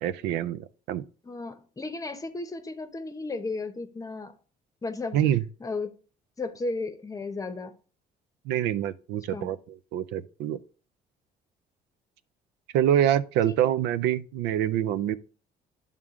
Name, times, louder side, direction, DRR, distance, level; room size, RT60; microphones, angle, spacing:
voice 1, 0.0-1.0 5.1-5.4 8.5-9.6 9.9-10.6 12.7-15.2, right 11 dB, 90° right, 0.4 m, -25 dB
voice 2, 1.2-4.3 4.8-5.2 5.6-5.9 6.4-7.7 9.3-9.5 13.5-13.6, left 3 dB, 20° left, 0.8 m, -34 dB
10.5 x 3.7 x 3.6 m
cardioid pair, 110°, 17 cm